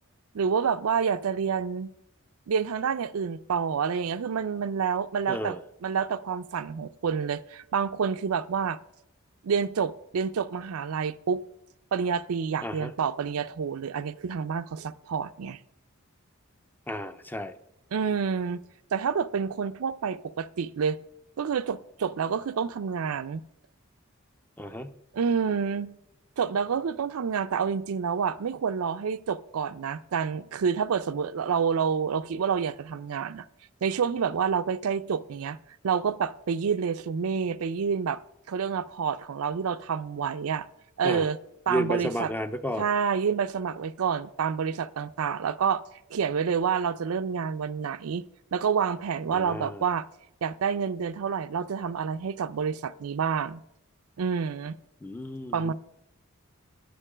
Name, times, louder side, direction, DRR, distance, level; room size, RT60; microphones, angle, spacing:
voice 1, 0.3-1.9 2.5-8.8 9.4-11.4 11.9-15.6 17.9-18.6 18.9-21.0 21.4-23.4 25.1-25.9 26.4-33.5 33.8-35.6 35.8-38.2 38.5-40.7 41.0-41.4 41.7-42.3 42.8-45.8 46.1-48.2 48.5-50.1 50.4-53.6 54.2-54.8 55.5-55.7, right 6 dB, 75° right, 0.4 m, -28 dB
voice 2, 5.3-5.6 12.6-12.9 16.9-17.6 24.6-24.9 41.0-41.3 41.7-42.9 49.3-49.8 55.0-55.7, equal, 10° left, 0.5 m, -32 dB
10.5 x 6.7 x 5.0 m
head